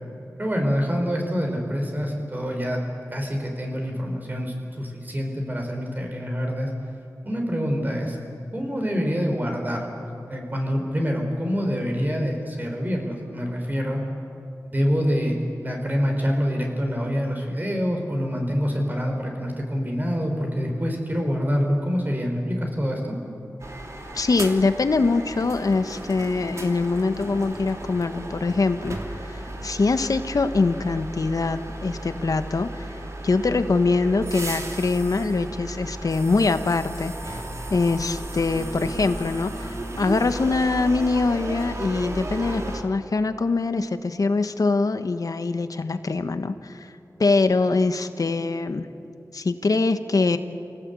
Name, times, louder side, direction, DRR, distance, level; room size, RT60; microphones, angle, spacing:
voice 1, 0.4-2.8 3.1-6.7 7.2-8.2 8.5-14.0 14.6-23.2, equal, 30° right, 1 dB, 4.9 m, -26 dB
sound 1, 23.6-42.8, right 1 dB, 50° right, 2.9 m, -35 dB
voice 2, 24.1-29.0 29.3-32.9 33.2-37.4 37.7-39.7 40.0-46.9 47.2-48.9 49.3-50.4, left 3 dB, 65° left, 9 dB, 1.3 m, -23 dB
27.5 x 18.0 x 8.4 m, 2.7 s
wide cardioid pair, 75°, 7 cm